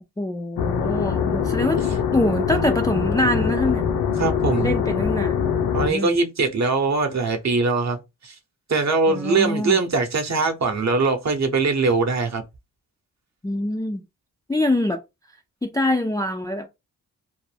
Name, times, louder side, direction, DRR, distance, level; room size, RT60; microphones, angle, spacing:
voice 1, 0.2-1.8 2.1-3.9 4.6-5.5 5.9-6.2 9.1-9.8 13.4-14.0 14.5-15.0 15.6-16.7, left 1 dB, 10° left, 0.3 m, -24 dB
sound 1, 0.6-5.9, left 7 dB, 75° left, 0.7 m, -23 dB
voice 2, 4.2-4.7 5.7-8.0 8.2-8.4 8.7-12.4, right 3 dB, 40° right, 0.8 m, -21 dB
2.3 x 2.1 x 3.2 m
supercardioid pair, 50°, 40 cm